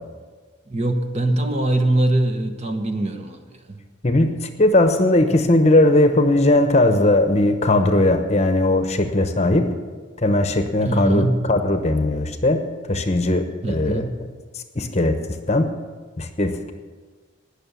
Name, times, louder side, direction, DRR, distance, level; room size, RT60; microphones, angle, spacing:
voice 1, 0.7-3.4 3.7-3.8 10.8-11.5 13.6-14.2, right 1 dB, 35° right, 5 dB, 1.1 m, -22 dB
voice 2, 4.0-9.7 10.2-12.6 12.9-14.1 14.7-15.2 15.5-15.7 16.2-16.7, left 2 dB, 35° left, 7 dB, 0.9 m, -18 dB
19.0 x 6.7 x 6.9 m, 1.4 s
head